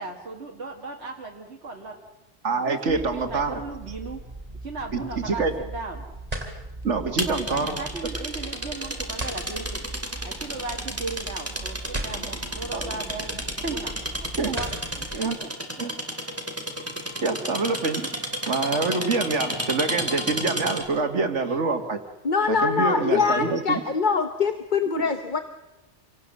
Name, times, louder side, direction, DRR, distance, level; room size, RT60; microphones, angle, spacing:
voice 1, 0.0-2.0 2.5-4.3 4.6-6.1 7.0-9.8 10.2-13.9 14.5-14.7 15.2-15.5, right 3 dB, 65° right, 0 dB, 2.1 m, -36 dB
voice 2, 2.4-3.6 4.9-5.5 6.8-7.7 12.7-12.9 13.6-13.8 14.2-14.6 15.1-15.4 15.8-15.9 17.2-18.1 18.5-22.0 22.5-23.8, right 4 dB, 90° right, 7 dB, 2.3 m, -26 dB
sound 1, 2.9-15.2, right 2 dB, 35° right, 3.3 m, -38 dB
sound 2, 7.2-21.0, equal, 10° right, 2.5 m, -32 dB
voice 3, 22.2-25.4, left 5 dB, 45° left, 9 dB, 1.1 m, -23 dB
27.0 x 17.5 x 7.6 m, 1.0 s
omnidirectional pair, 1.2 m